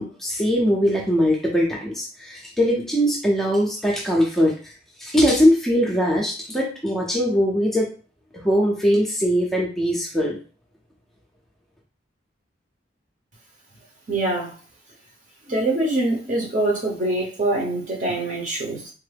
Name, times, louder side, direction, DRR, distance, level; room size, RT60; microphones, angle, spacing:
voice 1, 0.0-4.7 5.0-7.9 8.3-10.4, equal, ahead, -3 dB, 0.5 m, -21 dB
voice 2, 14.1-14.5 15.4-18.9, right 2 dB, 40° right, -2 dB, 0.8 m, -24 dB
3.5 x 2.0 x 3.3 m, 0.38 s
head